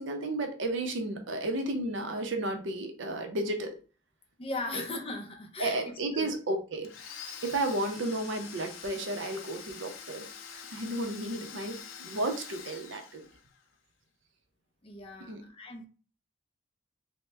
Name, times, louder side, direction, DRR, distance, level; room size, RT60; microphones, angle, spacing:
voice 1, 0.0-3.8 4.7-4.8 5.6-6.9 7.4-13.2 15.3-15.4, right 2 dB, 65° right, 5 dB, 0.5 m, -33 dB
voice 2, 4.4-6.3 14.8-15.9, left 2 dB, 25° left, 4 dB, 0.4 m, -38 dB
Domestic sounds home sounds, 6.8-13.6, left 7 dB, 75° left, 0.5 m, -45 dB
2.9 x 2.0 x 3.3 m, 0.37 s
head